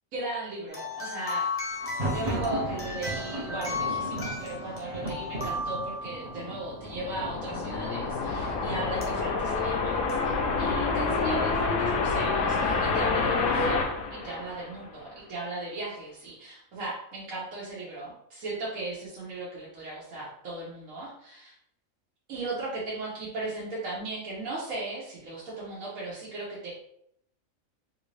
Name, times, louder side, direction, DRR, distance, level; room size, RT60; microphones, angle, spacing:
voice 1, 0.1-1.8 2.1-21.5 22.3-26.7, right 2 dB, 75° right, -7 dB, 1.2 m, -37 dB
sound 1, 0.7-6.7 9.0-9.1 10.1-10.2, left 3 dB, 15° left, 0.6 m, -35 dB
Thunder, 1.7-9.5, right 1 dB, 40° right, 0.6 m, -37 dB
sound 2, 6.6-15.0, left 4 dB, 90° left, 1.1 m, -28 dB
3.3 x 2.6 x 3.2 m, 0.73 s
omnidirectional pair, 1.4 m